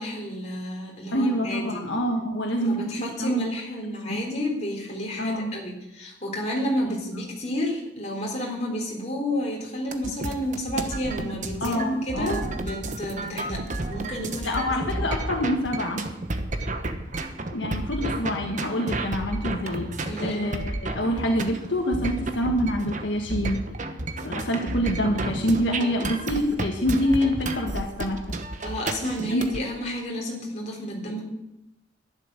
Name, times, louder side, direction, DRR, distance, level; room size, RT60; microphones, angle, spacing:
voice 1, 0.0-1.9 2.6-15.1 20.1-20.5 28.6-31.2, left 1 dB, 35° left, -1 dB, 3.8 m, -31 dB
voice 2, 1.1-2.9 3.2-3.5 4.1-4.2 5.2-5.6 11.6-12.4 14.4-16.0 17.5-23.6 24.2-28.3 29.3-29.4 31.0-31.2, equal, 75° left, 2 dB, 1.6 m, -26 dB
sound 1, 9.9-29.6, right 2 dB, 40° right, 1.1 m, -32 dB
11.5 x 10.5 x 6.7 m, 0.90 s
head